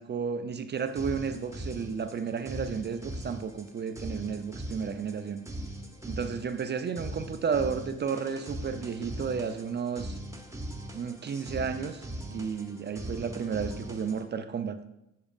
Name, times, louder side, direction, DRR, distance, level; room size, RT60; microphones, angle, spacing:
voice 1, 0.0-5.4 6.0-10.2 10.9-14.8, right 6 dB, 35° right, 0.5 m, -32 dB
sound 1, 0.8-14.2, right 1 dB, 10° right, 0.9 m, -40 dB
7.1 x 6.2 x 2.4 m
cardioid pair, 90°, 30 cm